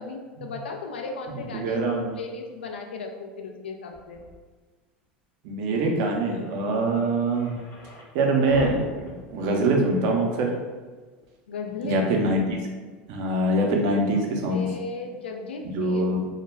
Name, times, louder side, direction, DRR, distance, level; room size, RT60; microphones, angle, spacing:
voice 1, 0.0-4.2 11.5-12.1 14.5-16.1, left 4 dB, 85° left, 3 dB, 0.4 m, -36 dB
voice 2, 1.5-2.1 5.4-7.5 8.1-8.8 9.3-10.5 11.8-12.6 13.1-14.7 15.7-16.3, right 2 dB, 60° right, 1 dB, 0.6 m, -23 dB
sound 1, 3.9-4.4 5.7-5.8 6.1-6.2 6.5-8.1 8.5-10.1 10.3-10.4 11.2-11.3 13.4-13.5, left 2 dB, 45° left, 0.7 m, -40 dB
2.2 x 2.1 x 3.2 m, 1.4 s
hypercardioid pair, 90°, 6 cm